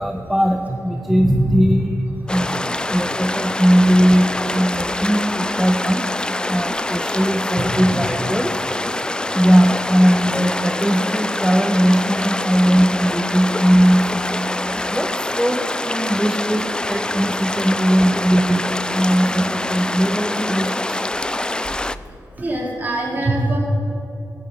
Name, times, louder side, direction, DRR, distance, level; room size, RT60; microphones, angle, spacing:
voice 1, 0.0-2.0 2.3-6.1 6.5-8.5 9.3-14.4 14.9-18.6 18.9-21.0, equal, ahead, 4 dB, 0.7 m, -19 dB
voice 2, 1.1-1.6 22.4-23.6, right 1 dB, 25° right, -3 dB, 3.2 m, -21 dB
sound 1, 2.3-22.0, left 1 dB, 15° left, 0.3 m, -25 dB
14.0 x 6.1 x 9.1 m, 3.0 s
wide cardioid pair, 95°, 7 cm